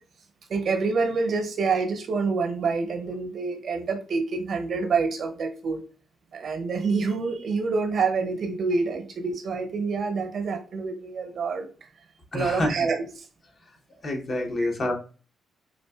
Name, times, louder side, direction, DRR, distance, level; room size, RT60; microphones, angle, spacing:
voice 1, 0.5-5.8 6.3-11.7 12.3-13.2 14.6-14.7, right 4 dB, 60° right, 5 dB, 0.7 m, -27 dB
voice 2, 12.3-12.7 14.0-14.9, left 1 dB, 50° left, 2 dB, 0.9 m, -27 dB
3.8 x 2.6 x 2.3 m, 0.38 s
hypercardioid pair, 45°, 0 cm